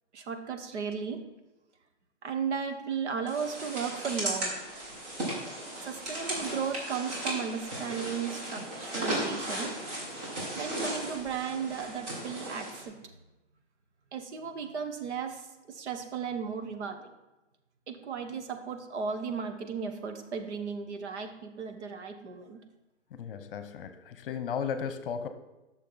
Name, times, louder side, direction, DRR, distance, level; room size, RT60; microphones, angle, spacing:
voice 1, 0.1-1.2 2.2-4.6 5.8-9.7 10.5-13.0 14.1-17.1 17.9-22.6, right 6 dB, 65° right, 6 dB, 1.4 m, -35 dB
sound 1, 3.3-12.8, right 1 dB, 35° right, 3.1 m, -36 dB
voice 2, 23.1-25.3, left 7 dB, 50° left, 10 dB, 0.9 m, -35 dB
12.0 x 6.5 x 4.0 m, 1.0 s
hypercardioid pair, 150°, 36 cm